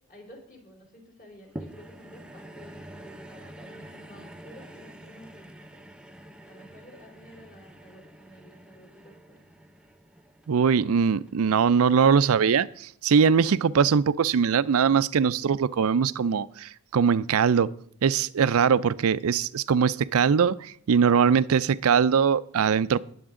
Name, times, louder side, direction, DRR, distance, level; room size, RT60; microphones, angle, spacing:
voice 1, 0.0-5.8 6.4-9.2, equal, 40° left, 0 dB, 3.7 m, -51 dB
sound 1, 1.6-12.0 12.7-12.8, right 1 dB, 5° right, 0.7 m, -47 dB
voice 2, 10.5-17.7 18.0-23.0, right 6 dB, 65° right, 17 dB, 0.4 m, -22 dB
19.5 x 7.9 x 3.7 m, 0.66 s
head